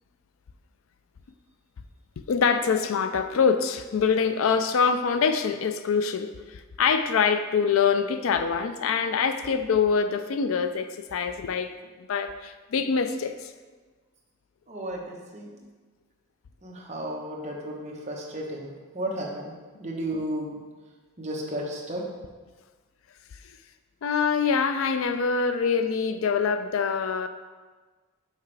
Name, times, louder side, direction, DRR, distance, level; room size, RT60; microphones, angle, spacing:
voice 1, 2.2-11.7 12.0-13.5 24.0-27.3, left 6 dB, 85° left, 10 dB, 0.4 m, -25 dB
voice 2, 14.7-15.5 16.6-19.5 19.8-20.6 21.2-22.0, right 1 dB, 35° right, -2 dB, 1.0 m, -33 dB
5.8 x 5.7 x 3.3 m, 1.4 s
head